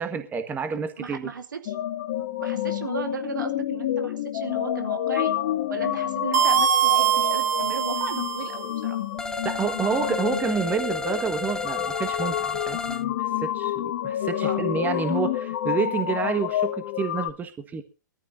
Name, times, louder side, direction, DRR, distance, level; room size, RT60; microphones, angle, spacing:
voice 1, 0.0-1.3 9.4-13.2 13.4-17.8, right 6 dB, 15° right, 1.5 m, -29 dB
voice 2, 1.0-1.8 2.4-5.3 5.7-9.0 14.4-14.7, right 6 dB, 75° right, 2.3 m, -35 dB
sound 1, 1.7-17.3, left 12 dB, 50° left, 1.8 m, -29 dB
sound 2, 6.3-8.7, right 9 dB, 60° right, 1.0 m, -23 dB
sound 3, 9.2-13.0, left 2 dB, 5° left, 0.6 m, -33 dB
22.5 x 14.0 x 2.7 m
hypercardioid pair, 115°, 10 cm